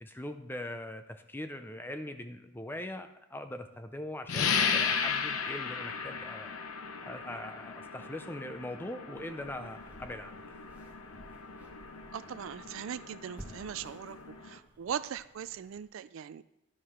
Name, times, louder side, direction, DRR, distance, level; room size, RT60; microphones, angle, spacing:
voice 1, 0.0-6.5 7.0-10.3, left 1 dB, 10° left, 8 dB, 0.5 m, -41 dB
sound 1, 4.3-14.6, left 6 dB, 90° left, 0.8 m, -36 dB
sound 2, 9.1-15.9, right 1 dB, 10° right, 1.4 m, -55 dB
voice 2, 12.1-14.2 14.4-16.4, right 8 dB, 65° right, 15 dB, 0.3 m, -39 dB
11.0 x 4.8 x 5.7 m, 0.88 s
head